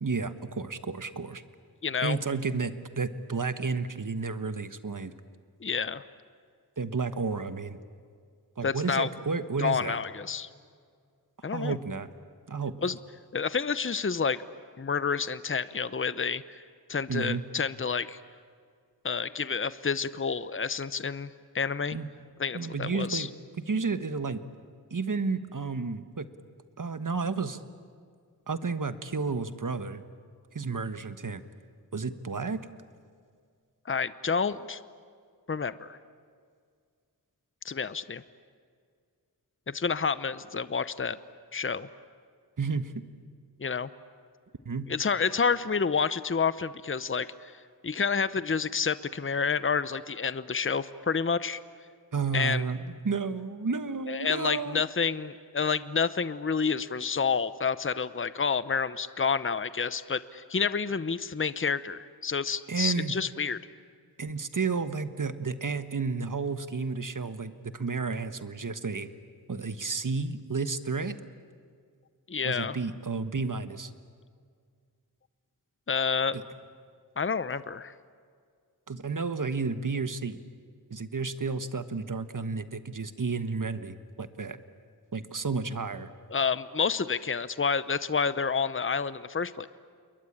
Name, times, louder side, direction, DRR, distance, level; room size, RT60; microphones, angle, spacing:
voice 1, 0.0-1.4 2.0-5.1 6.8-7.8 8.6-10.0 11.5-12.1 12.5-12.8 17.1-17.4 21.9-22.1 22.5-23.3 23.7-24.4 24.9-26.3 26.8-27.6 28.5-30.0 30.5-31.4 31.9-32.7 42.6-43.0 44.6-44.9 52.1-54.8 62.7-63.1 64.2-69.1 69.5-71.2 72.4-73.9 76.3-76.4 78.9-80.4 80.9-84.6 85.1-86.1, right 4 dB, 55° right, 11 dB, 1.4 m, -31 dB
voice 2, 1.8-2.2 5.6-6.0 8.6-9.1 9.6-10.5 11.4-11.8 12.8-13.0 13.3-14.4 14.8-16.6 16.9-18.2 19.0-22.0 22.4-23.3 33.9-34.8 35.5-36.0 37.6-38.2 39.7-41.2 41.5-41.9 43.6-43.9 44.9-47.5 47.8-51.6 52.3-52.6 54.1-63.6 72.3-72.8 75.9-76.4 77.2-77.9 86.3-89.7, left 5 dB, 30° left, 15 dB, 0.8 m, -29 dB
29.0 x 22.5 x 8.8 m, 2.1 s
wide cardioid pair, 45°, 39 cm